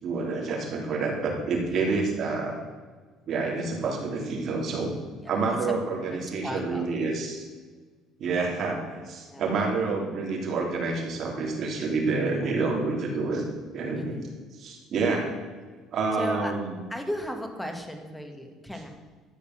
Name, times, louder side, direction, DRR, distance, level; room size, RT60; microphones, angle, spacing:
voice 1, 0.0-2.6 3.3-4.9 5.3-7.4 8.2-13.4 13.7-14.1 14.6-15.3 15.9-16.7, right 4 dB, 45° right, 0 dB, 3.4 m, -28 dB
voice 2, 5.2-5.7 6.1-7.0 9.2-9.8 12.2-12.5 13.9-14.3 16.1-16.5 16.9-18.9, equal, 5° left, 4 dB, 1.6 m, -36 dB
13.0 x 7.0 x 7.5 m, 1.4 s
cardioid pair, 150°, 0 cm